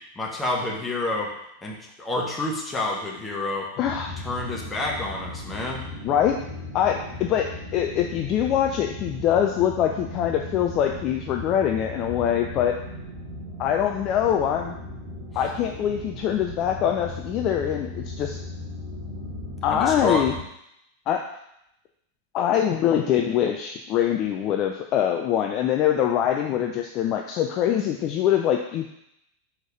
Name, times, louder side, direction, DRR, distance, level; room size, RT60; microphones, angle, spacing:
voice 1, 0.1-1.3 1.6-3.7 4.2-5.8 19.7-20.3, left 2 dB, 15° left, -1 dB, 1.3 m, -28 dB
voice 2, 3.8-4.1 6.0-6.4 6.7-7.5 7.7-12.7 13.6-14.8 15.3-18.4 19.6-20.3 21.1-21.2 22.3-28.9, left 10 dB, 35° left, 3 dB, 0.4 m, -23 dB
sound 1, 3.8-20.4, left 1 dB, 20° right, 2.1 m, -37 dB
4.7 x 4.3 x 5.0 m, 0.79 s
figure-of-eight pair, 90°, 0 cm